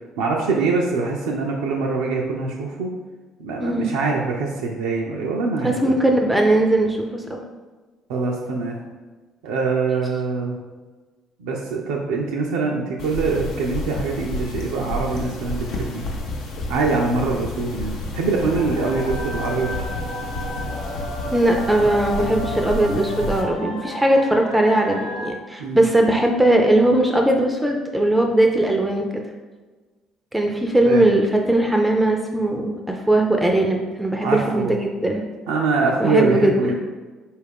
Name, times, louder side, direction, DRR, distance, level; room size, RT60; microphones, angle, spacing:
voice 1, 0.2-2.9 3.4-5.7 8.1-8.8 9.4-10.6 11.4-16.1 16.7-19.8 25.6-25.9 30.9-31.1 34.2-34.7 35.5-36.8, right 4 dB, 70° right, -1 dB, 0.3 m, -23 dB
voice 2, 5.6-7.4 21.3-29.3 30.3-35.2 36.0-36.7, right 1 dB, 10° right, 2 dB, 0.5 m, -19 dB
sound 1, 13.0-23.4, left 1 dB, 60° left, 0.6 m, -30 dB
sound 2, 18.5-25.3, left 1 dB, 80° left, 0.9 m, -33 dB
4.1 x 2.4 x 3.4 m, 1.3 s
figure-of-eight pair, 50°, 0 cm